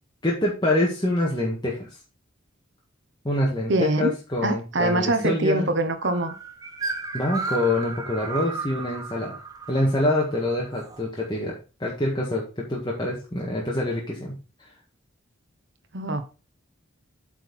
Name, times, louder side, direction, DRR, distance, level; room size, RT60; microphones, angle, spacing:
voice 1, 0.2-1.9 3.2-5.7 7.1-9.4 9.7-14.3, left 1 dB, 20° left, 1.6 m, -25 dB
voice 2, 3.7-4.1 4.4-6.3 15.9-16.2, right 2 dB, 60° right, 1.0 m, -23 dB
sound 1, 6.0-11.0, right 4 dB, 20° right, 0.9 m, -34 dB
8.3 x 4.5 x 4.1 m
head